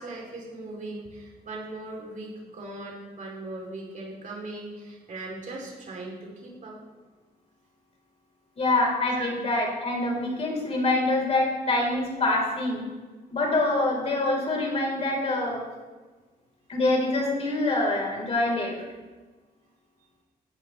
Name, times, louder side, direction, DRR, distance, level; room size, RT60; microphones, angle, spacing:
voice 1, 0.0-6.8 9.1-9.3, right 2 dB, 50° right, -1 dB, 3.1 m, -39 dB
voice 2, 8.6-12.8 13.3-15.6 16.7-18.8, left 2 dB, 40° left, -1 dB, 4.0 m, -25 dB
17.0 x 12.5 x 3.3 m, 1.3 s
wide cardioid pair, 160°, 16 cm